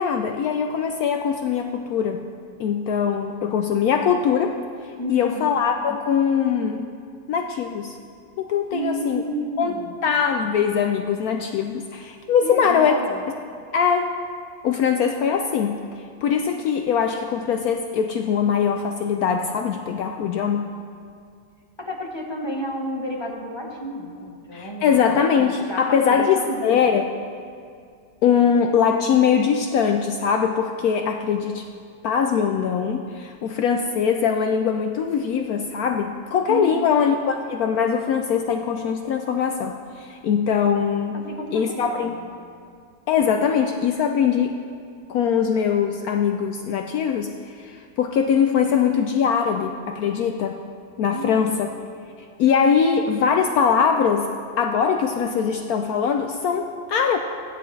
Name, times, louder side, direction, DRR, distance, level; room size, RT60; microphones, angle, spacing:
voice 1, 0.0-2.2 2.6-4.6 5.1-6.9 7.3-7.9 8.4-9.2 9.6-9.8 10.0-12.9 13.7-14.2 14.6-20.7 24.5-27.1 28.2-31.7 32.0-41.2 41.5-42.1 43.1-44.6 45.1-50.6 51.0-51.7 52.4-54.3 54.6-57.2, left 7 dB, 75° left, 4 dB, 0.8 m, -22 dB
voice 2, 5.0-5.5 8.7-10.0 12.4-13.2 21.8-25.0 25.7-26.9 36.5-36.9 41.1-42.4 51.1-51.7, equal, 20° left, -2 dB, 0.7 m, -31 dB
15.0 x 9.7 x 3.2 m, 2.3 s
omnidirectional pair, 2.0 m